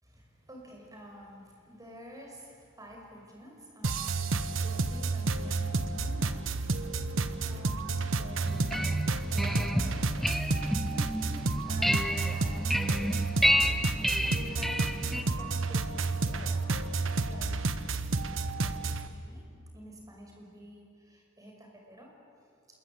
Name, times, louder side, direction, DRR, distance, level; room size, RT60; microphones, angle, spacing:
voice 1, 0.0-14.1 14.4-17.8 18.4-22.1, equal, 20° right, 0 dB, 5.6 m, -50 dB
sound 1, 3.8-19.1, right 3 dB, 85° right, 1.2 m, -31 dB
sound 2, 8.4-15.2, equal, ahead, 0.9 m, -30 dB
27.5 x 21.5 x 8.6 m, 2.3 s
head